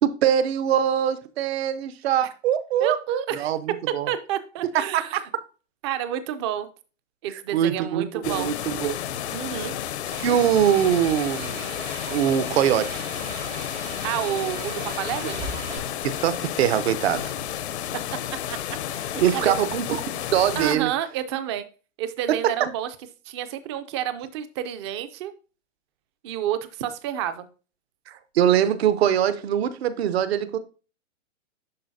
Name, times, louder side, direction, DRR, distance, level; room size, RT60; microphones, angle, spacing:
voice 1, 0.0-3.0 3.4-4.1 4.7-5.2 7.5-9.0 10.2-11.7 12.1-13.0 16.0-17.3 19.2-20.0 20.3-20.9 22.6-22.7 28.3-30.6, right 10 dB, 60° right, 0.8 m, -22 dB
voice 2, 2.8-5.2 5.8-6.7 7.2-8.5 9.3-9.8 14.0-15.4 18.5-18.6 18.9-19.5 20.6-21.7 22.0-22.9 23.2-25.3 26.2-27.5, right 10 dB, 25° right, 0.4 m, -29 dB
sound 1, 8.2-20.8, left 11 dB, 65° left, 0.7 m, -32 dB
sound 2, 10.1-15.8, right 4 dB, 85° right, 3.6 m, -38 dB
11.0 x 3.9 x 2.7 m
hypercardioid pair, 145°, 36 cm